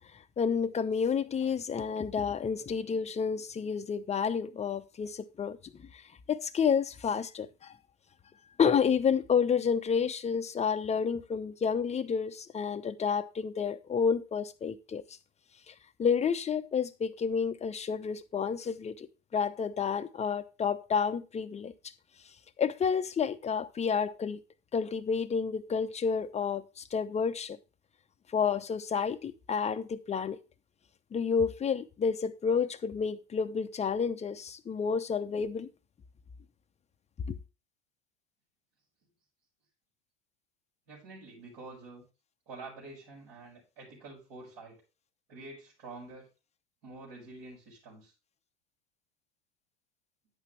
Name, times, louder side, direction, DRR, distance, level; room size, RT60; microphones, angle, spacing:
voice 1, 0.4-6.0 6.3-7.7 8.6-15.0 15.7-15.8 16.0-19.1 19.3-21.7 22.6-24.4 24.7-27.6 28.3-30.4 31.1-35.7 37.3-37.4, left 6 dB, 20° left, 0.8 m, -30 dB
voice 2, 40.9-42.0 42.5-44.8 45.3-46.3 46.8-48.1, right 3 dB, 60° right, 6.2 m, -47 dB
10.5 x 8.2 x 3.3 m
figure-of-eight pair, 80°, 35 cm